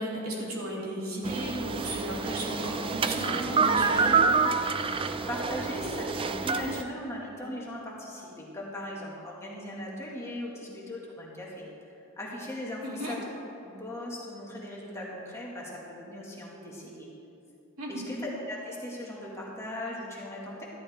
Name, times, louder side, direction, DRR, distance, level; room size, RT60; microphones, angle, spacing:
voice 1, 0.0-4.2 12.8-13.1 17.8-18.1, right 1 dB, 85° right, -5 dB, 2.9 m, -34 dB
sound 1, 1.2-6.8, right 5 dB, 25° right, 0.3 m, -27 dB
voice 2, 5.3-11.7 12.2-13.2 13.6-17.1 17.9-20.7, left 1 dB, 15° left, -4 dB, 1.8 m, -38 dB
13.5 x 11.5 x 3.5 m, 2.6 s
head